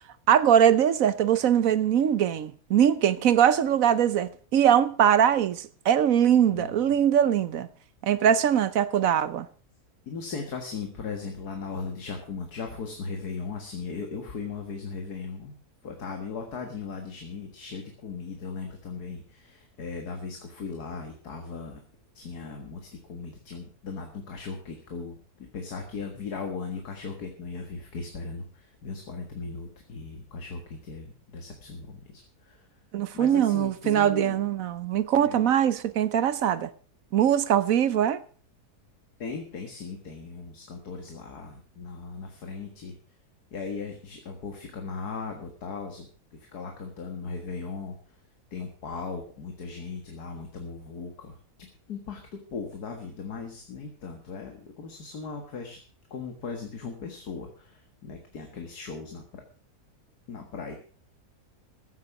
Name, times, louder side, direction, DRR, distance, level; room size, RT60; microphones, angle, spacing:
voice 1, 0.3-7.7 8.0-9.5 32.9-36.7 37.1-38.2, right 9 dB, 65° right, 1.1 m, -22 dB
voice 2, 6.5-6.9 10.0-15.6 15.8-21.8 22.1-32.7 33.1-34.4 35.2-35.5 39.2-42.9 43.5-48.2 48.5-55.8 56.1-59.4 60.3-60.7, left 4 dB, 75° left, 2.2 m, -38 dB
14.5 x 8.3 x 5.9 m
omnidirectional pair, 1.7 m